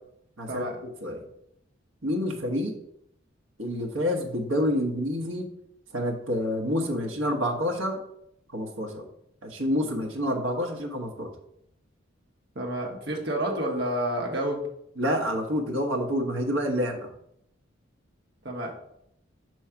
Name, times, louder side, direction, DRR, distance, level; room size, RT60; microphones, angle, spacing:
voice 1, 0.4-1.2 2.0-2.7 3.6-5.5 5.9-8.0 8.5-9.1 9.4-11.3 15.0-17.1, equal, 80° right, 2 dB, 1.2 m, -28 dB
voice 2, 12.5-14.7 18.4-18.7, right 1 dB, 55° right, 0 dB, 1.4 m, -29 dB
6.2 x 3.1 x 5.7 m, 0.74 s
head